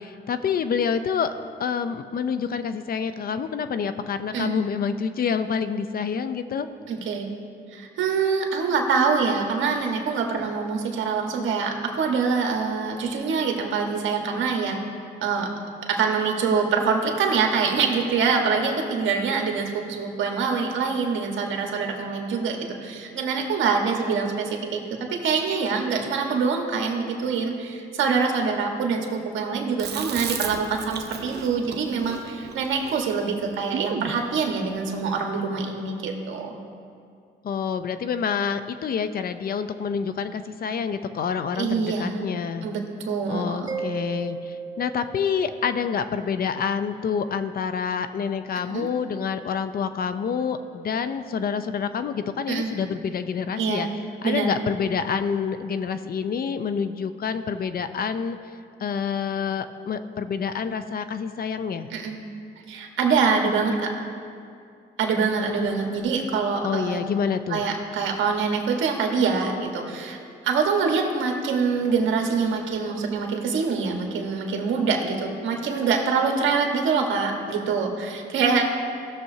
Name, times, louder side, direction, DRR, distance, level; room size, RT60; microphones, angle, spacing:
voice 1, 0.0-1.3 1.6-6.7 37.4-42.7 43.3-53.9 54.2-58.4 58.8-61.9 66.6-67.6, left 6 dB, 50° left, 11 dB, 0.6 m, -27 dB
voice 2, 6.9-7.3 7.7-14.8 15.2-15.5 15.9-24.8 25.1-36.6 41.5-42.3 42.6-43.7 48.7-48.9 52.5-52.7 53.6-53.9 54.2-54.5 61.9-62.2 62.7-63.9 65.0-67.0 67.5-70.2 70.4-78.7, right 5 dB, 75° right, 2 dB, 1.5 m, -25 dB
Chewing mastication, 29.8-34.2, right 7 dB, 55° right, 0.8 m, -34 dB
Mallet percussion, 43.7-46.2, right 4 dB, 20° right, 0.4 m, -35 dB
17.5 x 6.8 x 2.8 m, 2.4 s
cardioid pair, 90°, 20 cm